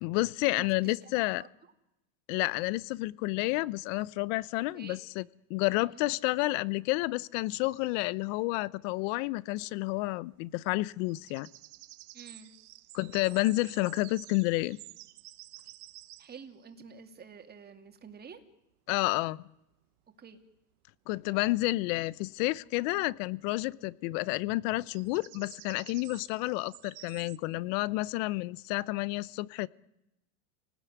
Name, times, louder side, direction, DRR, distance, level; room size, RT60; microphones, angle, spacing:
voice 1, 0.0-1.4 2.3-5.2 5.5-11.5 12.9-14.8 18.9-19.4 21.1-29.7, left 21 dB, 55° left, 0.9 m, -30 dB
voice 2, 0.5-1.7 4.7-5.0 5.8-6.0 12.1-12.5 16.2-18.4 20.1-20.4, right 6 dB, 20° right, 2.7 m, -49 dB
sound 1, 7.4-8.0 9.6-10.5 11.1-16.6 18.1-18.2 18.4-18.5 21.2-21.3 23.0-23.1 23.3-23.4 23.6-27.4, right 19 dB, 70° right, 1.3 m, -52 dB
29.0 x 19.0 x 9.5 m
supercardioid pair, 140°, 46 cm